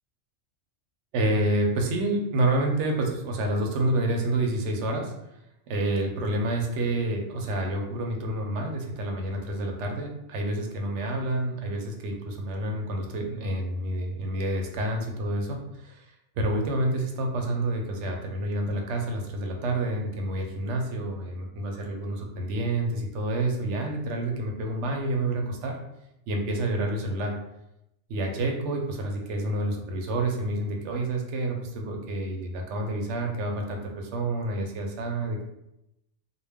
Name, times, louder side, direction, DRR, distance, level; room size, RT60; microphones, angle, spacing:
voice 1, 1.1-5.1 5.7-25.8 26.3-27.3 28.1-35.4, right 1 dB, 70° right, 2 dB, 0.8 m, -28 dB
2.2 x 2.2 x 3.3 m, 0.86 s
omnidirectional pair, 1.3 m